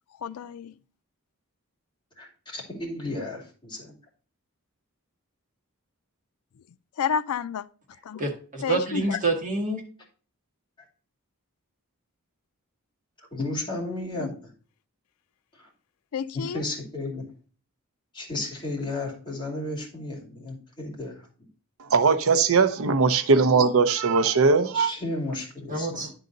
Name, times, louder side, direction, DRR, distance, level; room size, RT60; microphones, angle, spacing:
voice 1, 0.2-0.7 7.0-7.7 8.0-8.2 8.6-9.2 14.2-14.3 16.1-16.6, left 7 dB, 80° left, 0.4 m, -30 dB
voice 2, 2.2-3.9 13.3-14.5 15.6-15.7 16.3-17.3 18.1-21.2 24.7-26.1, left 2 dB, 20° left, 2.6 m, -33 dB
voice 3, 8.2-9.8 25.7-26.1, right 3 dB, 35° right, 1.9 m, -27 dB
voice 4, 21.9-24.9, right 4 dB, 70° right, 0.6 m, -20 dB
10.5 x 3.9 x 3.9 m
head